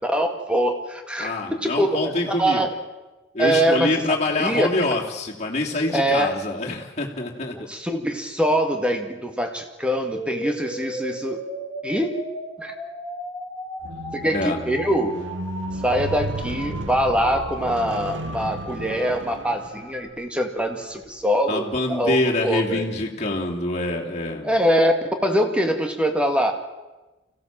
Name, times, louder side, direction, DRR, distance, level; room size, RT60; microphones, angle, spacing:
voice 1, 0.0-2.7 3.4-4.0 4.4-4.7 5.9-6.3 7.5-11.4 11.8-12.1 12.6-12.8 14.1-15.2 15.8-22.8 24.4-24.9 25.2-26.5, equal, 5° right, 5 dB, 2.0 m, -23 dB
voice 2, 1.2-2.7 3.3-7.6 14.2-14.6 21.5-24.5, left 2 dB, 35° left, -2 dB, 2.9 m, -25 dB
sound 1, 10.1-20.1, equal, 15° left, 6.6 m, -36 dB
Squeak, 13.8-20.2 20.9-21.1, right 1 dB, 70° right, 1.7 m, -34 dB
25.0 x 16.0 x 7.5 m, 1.1 s
head